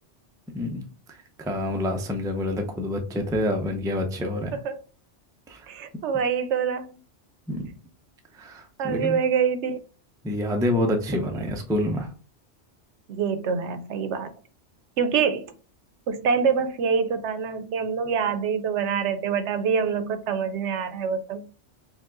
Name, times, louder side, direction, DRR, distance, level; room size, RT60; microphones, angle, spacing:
voice 1, 0.5-0.8 1.1-4.5 5.5-5.7 7.5-7.7 8.3-9.2 10.2-12.1, left 1 dB, 5° right, 0.3 m, -27 dB
voice 2, 5.7-6.9 8.8-9.8 11.3-11.4 13.1-14.3 15.0-15.5 16.1-21.4, right 6 dB, 80° right, 0.9 m, -25 dB
4.7 x 2.4 x 3.7 m
omnidirectional pair, 1.2 m